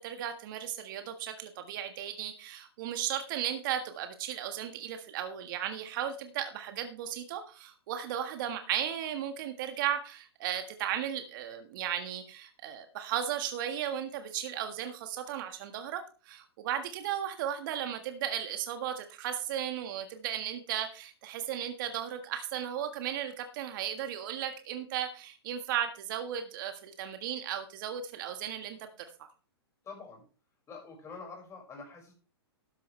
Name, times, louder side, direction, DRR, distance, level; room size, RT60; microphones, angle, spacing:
voice 1, 0.0-28.9 29.2-29.3, right 10 dB, 50° right, 7 dB, 1.6 m, -35 dB
voice 2, 29.8-30.2 30.7-32.1, left 4 dB, 20° left, 2 dB, 5.6 m, -46 dB
13.0 x 10.5 x 3.3 m, 0.37 s
hypercardioid pair, 120°, 14 cm